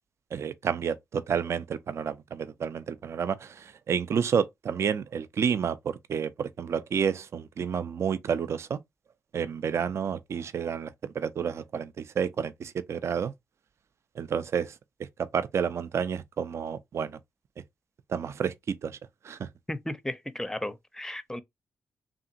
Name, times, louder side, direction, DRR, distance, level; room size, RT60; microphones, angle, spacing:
voice 1, 0.3-8.8 9.3-13.3 14.2-14.7 15.2-17.2 18.1-19.0 19.2-19.5, right 7 dB, 55° right, 0.3 m, -30 dB
voice 2, 19.7-21.4, left 1 dB, 10° left, 0.5 m, -34 dB
2.8 x 2.5 x 2.5 m
supercardioid pair, 45°, 6 cm